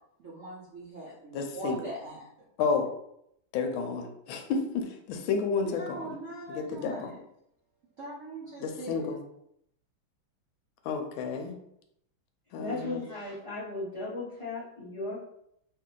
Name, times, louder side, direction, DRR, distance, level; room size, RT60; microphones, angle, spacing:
voice 1, 0.2-2.3 5.6-7.2 8.0-9.1, right 2 dB, 70° right, -7 dB, 0.7 m, -41 dB
voice 2, 1.3-1.8 2.6-2.9 3.5-6.2 6.5-7.1 8.6-9.2 10.8-11.6 12.5-13.0, left 5 dB, 75° left, 4 dB, 1.3 m, -31 dB
voice 3, 12.6-15.2, left 3 dB, 20° left, -9 dB, 1.0 m, -36 dB
3.2 x 2.6 x 3.7 m, 0.75 s
omnidirectional pair, 2.4 m